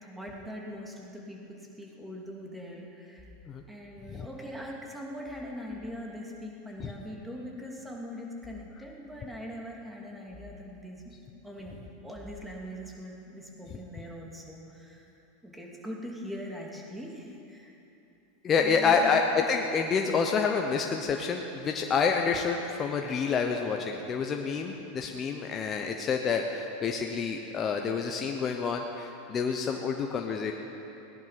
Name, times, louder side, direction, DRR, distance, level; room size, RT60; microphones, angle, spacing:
voice 1, 0.0-3.2 3.7-11.1 11.4-15.0 15.4-17.7 18.6-19.1, equal, 5° right, -2 dB, 2.7 m, -42 dB
voice 2, 18.4-30.5, left 5 dB, 35° left, 3 dB, 1.0 m, -28 dB
18.0 x 10.5 x 5.9 m, 2.9 s
hypercardioid pair, 100°, 0 cm